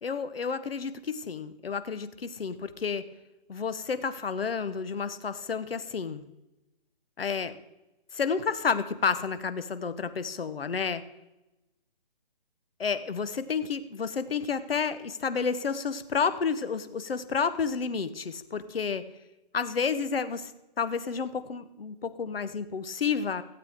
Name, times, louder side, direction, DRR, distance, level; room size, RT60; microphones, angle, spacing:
voice 1, 0.0-3.0 3.5-6.2 7.2-7.6 8.1-11.0 12.8-19.0 19.5-20.5 20.8-23.4, left 5 dB, 75° left, 12 dB, 1.1 m, -30 dB
16.0 x 8.2 x 3.7 m, 0.98 s
hypercardioid pair, 160°, 29 cm